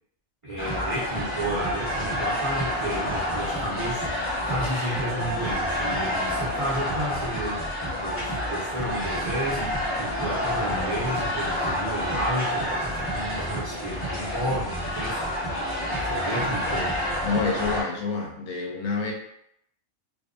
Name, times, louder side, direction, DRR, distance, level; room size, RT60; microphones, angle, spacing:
voice 1, 0.4-7.6 8.0-9.7 10.0-17.0, equal, 60° right, -8 dB, 0.3 m, -32 dB
sound 1, 0.6-17.8, equal, 10° left, 0.8 m, -28 dB
voice 2, 17.2-19.1, left 4 dB, 70° left, 1 dB, 0.9 m, -28 dB
2.4 x 2.2 x 2.4 m, 0.73 s
omnidirectional pair, 1.5 m